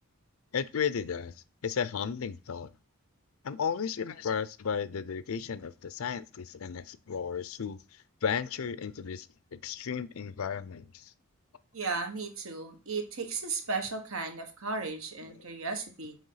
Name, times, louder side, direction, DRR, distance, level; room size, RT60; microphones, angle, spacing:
voice 1, 0.5-1.3 1.6-2.7 3.4-7.8 8.2-9.3 9.5-11.1, left 7 dB, 75° left, 0.5 m, -34 dB
voice 2, 11.7-16.2, right 4 dB, 70° right, 1.4 m, -35 dB
6.4 x 4.5 x 5.7 m
head